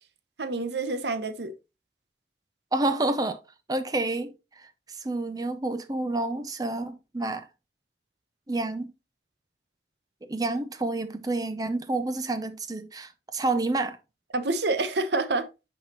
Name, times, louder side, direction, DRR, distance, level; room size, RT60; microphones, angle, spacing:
voice 1, 0.4-1.5 14.3-15.5, right 3 dB, 75° right, 0.9 m, -27 dB
voice 2, 2.7-3.4 3.7-7.5 8.5-8.9 10.3-14.0, right 2 dB, 20° right, 0.5 m, -29 dB
8.5 x 4.9 x 3.0 m
head